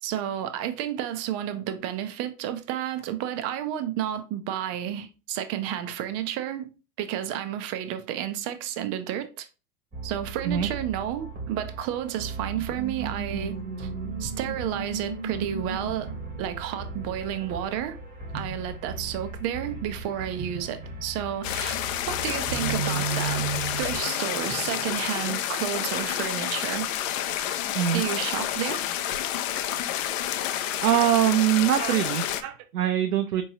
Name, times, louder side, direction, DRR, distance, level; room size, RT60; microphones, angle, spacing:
voice 1, 0.0-6.7 7.0-9.5 10.0-13.9 14.2-16.1 16.4-18.0 18.3-21.8 22.1-23.4 23.8-26.9 27.9-28.8 31.8-32.0 32.4-32.6, right 11 dB, 35° right, 0.5 m, -31 dB
sound 1, 9.9-24.0, right 3 dB, 15° right, 1.0 m, -39 dB
sound 2, 12.4-18.1 18.3-19.1 19.4-19.5 20.4-21.1 21.9-25.3 26.0-26.5, right 6 dB, 65° right, 1.1 m, -36 dB
sound 3, 21.4-32.4, left 11 dB, 55° left, 0.5 m, -29 dB
voice 2, 30.8-32.2 32.7-33.4, right 11 dB, 80° right, 0.6 m, -22 dB
4.4 x 3.0 x 2.7 m
hypercardioid pair, 95°, 47 cm